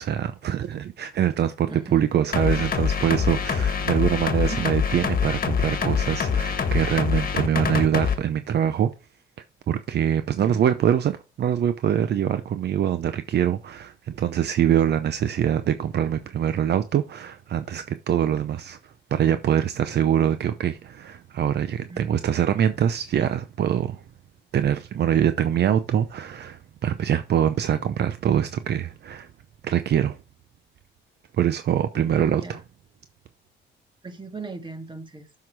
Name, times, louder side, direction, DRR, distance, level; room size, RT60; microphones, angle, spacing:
voice 1, 0.0-8.9 9.7-24.0 24.5-29.3 29.6-30.2 31.4-32.6, right 9 dB, 60° right, 0.7 m, -24 dB
voice 2, 1.7-2.1 3.5-3.9 4.5-4.8 10.4-10.7 21.9-22.1 32.1-32.6 34.0-35.3, right 3 dB, 25° right, 1.8 m, -38 dB
sound 1, 2.3-8.2, left 6 dB, 45° left, 1.6 m, -25 dB
7.7 x 5.8 x 4.7 m
cardioid pair, 90°, 20 cm